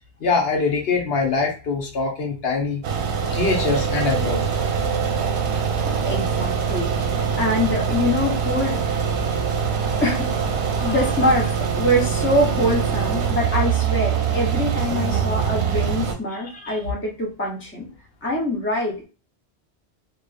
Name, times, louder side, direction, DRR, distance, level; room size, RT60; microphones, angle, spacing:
voice 1, 0.2-2.8 3.3-4.6 10.8-11.0 16.3-16.8, left 4 dB, 70° left, 1 dB, 0.9 m, -24 dB
sound 1, 2.8-16.1, right 7 dB, 85° right, 0.8 m, -23 dB
voice 2, 5.8-8.9 10.0-10.3 10.8-17.9 18.2-19.0, left 1 dB, 15° left, -3 dB, 0.5 m, -24 dB
2.6 x 2.3 x 2.3 m, 0.34 s
omnidirectional pair, 1.1 m